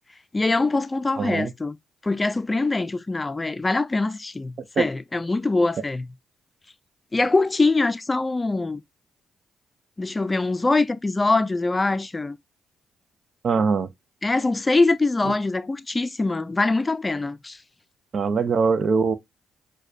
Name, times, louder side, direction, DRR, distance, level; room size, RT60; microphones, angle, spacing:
voice 1, 0.3-1.8 2.0-6.1 7.1-8.8 10.0-12.4 14.2-17.6, left 3 dB, 25° left, 0.4 m, -23 dB
voice 2, 1.2-1.5 4.8-4.9 13.4-13.9 18.1-19.1, right 5 dB, 55° right, 0.5 m, -22 dB
6.3 x 2.3 x 2.5 m
hypercardioid pair, 50°, 0 cm